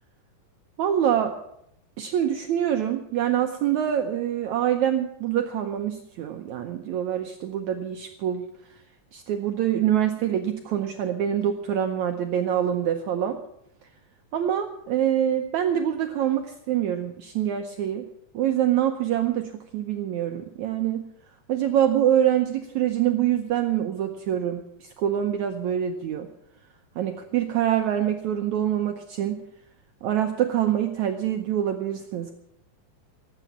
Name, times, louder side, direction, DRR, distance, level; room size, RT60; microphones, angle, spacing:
voice 1, 0.8-1.3 2.0-8.5 9.1-13.4 14.3-18.1 18.3-21.0 21.5-26.3 27.0-29.4 30.0-32.3, right 10 dB, 75° right, 5 dB, 1.8 m, -25 dB
18.0 x 8.3 x 7.4 m, 0.78 s
omnidirectional pair, 4.3 m